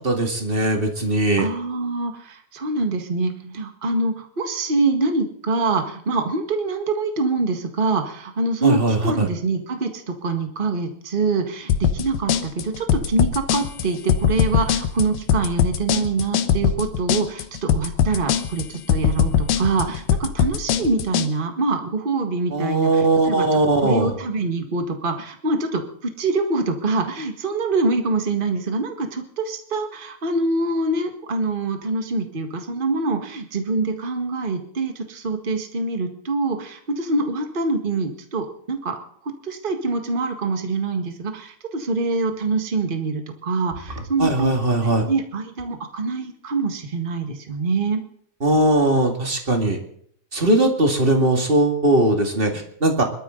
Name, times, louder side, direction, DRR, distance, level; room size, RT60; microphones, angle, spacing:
voice 1, 0.0-1.5 8.6-9.3 22.5-24.1 44.2-45.1 48.4-49.8 50.3-53.0, right 1 dB, 20° right, 3 dB, 1.8 m, -19 dB
voice 2, 1.4-39.0 39.4-48.0, right 3 dB, 45° right, 5 dB, 0.6 m, -25 dB
sound 1, 11.7-21.3, left 8 dB, 85° left, 2.9 m, -21 dB
24.0 x 13.0 x 3.9 m, 0.63 s
omnidirectional pair, 4.0 m